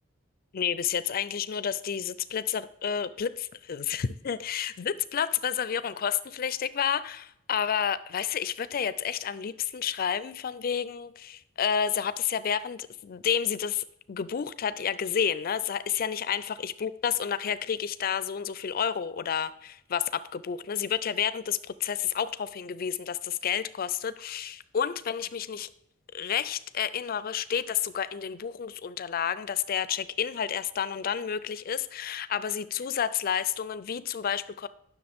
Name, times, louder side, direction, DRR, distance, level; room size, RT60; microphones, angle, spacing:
voice 1, 0.5-25.7 26.1-34.7, left 8 dB, 45° left, 15 dB, 0.4 m, -30 dB
10.5 x 6.3 x 3.5 m, 0.74 s
head